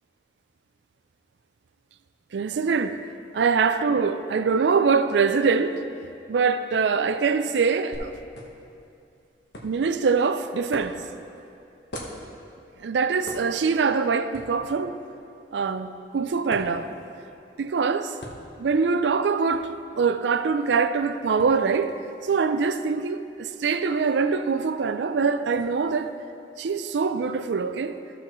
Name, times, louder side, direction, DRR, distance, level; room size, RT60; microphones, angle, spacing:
voice 1, 2.3-3.0 3.3-5.8 6.3-8.1 9.6-11.0 12.8-15.0 15.5-16.9 17.6-18.1 18.6-19.7 20.0-21.9 22.3-26.1 26.6-28.0, right 5 dB, 85° right, 0.4 m, -23 dB
sound 1, 7.9-25.6, equal, 85° left, 1.2 m, -46 dB
14.5 x 6.9 x 3.1 m
head